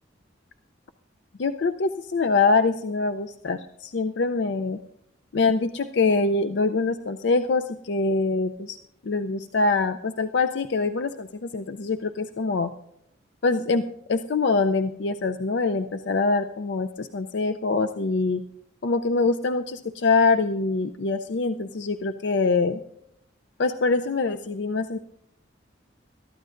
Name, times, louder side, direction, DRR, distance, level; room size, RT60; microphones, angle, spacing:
voice 1, 1.4-4.8 5.3-8.8 9.0-12.7 13.4-18.4 18.8-22.8 23.6-25.0, left 3 dB, 65° left, 9 dB, 0.5 m, -24 dB
22.5 x 13.0 x 2.5 m, 0.76 s
head